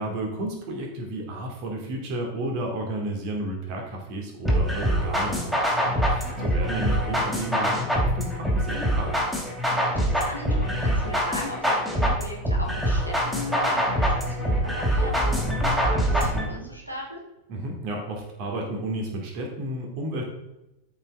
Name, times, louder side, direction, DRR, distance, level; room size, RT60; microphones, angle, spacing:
voice 1, 0.0-9.1 17.5-20.2, right 1 dB, 45° right, 1 dB, 2.6 m, -32 dB
sound 1, 4.5-16.5, equal, 5° right, 2.8 m, -24 dB
voice 2, 6.2-6.8 9.7-17.2, left 1 dB, 90° right, -1 dB, 2.7 m, -37 dB
13.5 x 5.6 x 3.7 m, 0.93 s
figure-of-eight pair, 90°, 0 cm